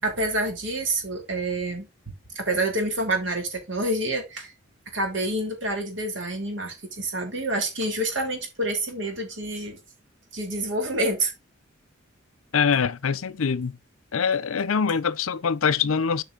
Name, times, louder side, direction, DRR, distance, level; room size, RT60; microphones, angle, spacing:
voice 1, 0.0-1.9 2.3-4.5 4.9-9.8 10.3-11.3, right 1 dB, 60° right, 2.8 m, -27 dB
voice 2, 12.5-13.8 14.1-16.2, left 6 dB, 80° left, 0.6 m, -24 dB
7.9 x 5.3 x 3.8 m
head